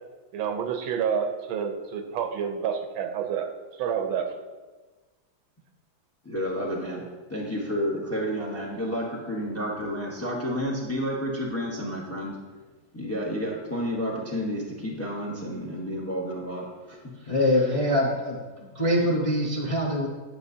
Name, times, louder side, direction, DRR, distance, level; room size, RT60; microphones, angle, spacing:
voice 1, 0.3-3.5 3.8-4.3, right 7 dB, 90° right, 6 dB, 1.5 m, -28 dB
voice 2, 6.2-7.0 7.3-12.4 12.9-17.0, equal, 10° left, -2 dB, 0.7 m, -30 dB
voice 3, 17.3-18.4 18.7-20.1, left 1 dB, 65° left, -4 dB, 0.3 m, -23 dB
9.3 x 6.4 x 2.7 m, 1.3 s
omnidirectional pair, 2.1 m